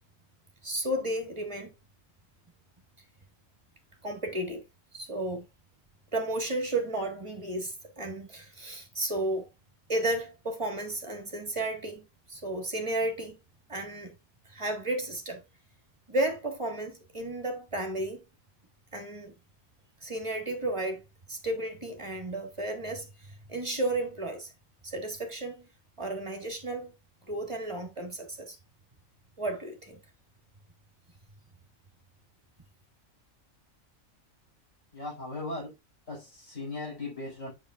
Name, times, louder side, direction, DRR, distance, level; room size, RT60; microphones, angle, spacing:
voice 1, 0.6-1.7 4.0-4.6 4.9-5.4 6.1-9.5 9.9-13.4 13.7-14.1 14.4-15.4 16.1-18.2 18.9-19.3 20.0-21.0 21.3-24.5 24.8-25.7 26.0-26.9 27.3-28.6 29.4-30.0, right 1 dB, 20° right, 1.7 m, -33 dB
voice 2, 34.9-35.7 36.1-37.5, left 2 dB, 70° left, 5.2 m, -38 dB
7.1 x 6.3 x 2.4 m
omnidirectional pair, 1.4 m